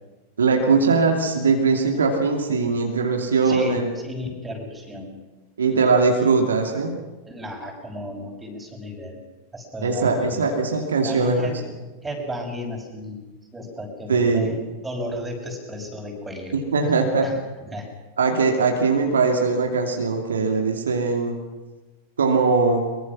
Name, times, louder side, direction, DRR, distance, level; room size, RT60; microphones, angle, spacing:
voice 1, 0.4-3.9 5.6-7.0 9.8-11.5 14.1-14.6 16.5-17.3 18.2-21.4 22.2-22.8, right 4 dB, 70° right, 2 dB, 2.6 m, -20 dB
voice 2, 3.4-5.1 5.7-5.9 6.3-6.4 7.2-9.2 9.5-10.5 11.0-11.6 12.0-13.2 13.5-16.9 17.2-17.4 17.7-17.9, left 1 dB, 10° right, 1 dB, 6.1 m, -34 dB
23.0 x 23.0 x 6.2 m, 1.2 s
figure-of-eight pair, 90°, 0 cm